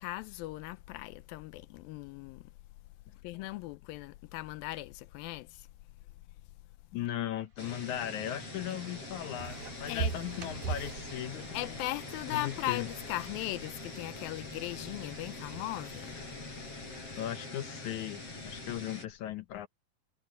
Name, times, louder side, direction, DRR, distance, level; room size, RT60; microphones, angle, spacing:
voice 1, 0.0-2.5 3.2-5.7 9.9-10.1 11.5-16.2, left 18 dB, 85° left, 2.4 m, -38 dB
sound 1, 6.7-6.8 7.0-15.2, right 4 dB, 40° right, 3.9 m, -57 dB
voice 2, 6.9-11.8 12.3-12.9 17.2-19.7, left 12 dB, 70° left, 2.1 m, -38 dB
sound 2, 7.6-19.0, left 2 dB, 40° left, 9.0 m, -44 dB
sound 3, 9.4-16.2, right 5 dB, 60° right, 4.1 m, -42 dB
omnidirectional pair, 4.1 m